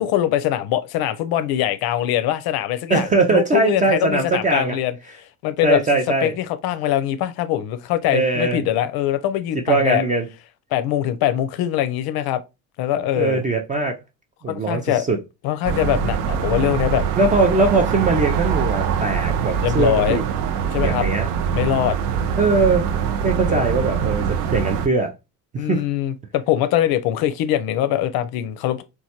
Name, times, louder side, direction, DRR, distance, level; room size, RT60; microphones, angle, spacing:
voice 1, 0.0-5.0 5.4-5.8 6.2-10.0 10.7-12.4 12.8-13.4 14.5-15.0 15.4-17.0 19.6-20.2 20.7-21.1 21.5-22.0 23.5-23.6 25.6-28.8, left 12 dB, 50° left, 0.5 m, -22 dB
voice 2, 2.9-4.8 5.6-6.3 8.1-8.6 9.5-10.3 13.1-14.0 14.4-15.2 17.2-20.2 20.8-21.3 22.4-22.9 23.2-25.1 25.5-25.8, right 3 dB, 20° right, 0.3 m, -20 dB
sound 1, 15.6-24.9, right 7 dB, 75° right, 0.5 m, -23 dB
3.0 x 2.2 x 2.8 m
figure-of-eight pair, 55°, 48 cm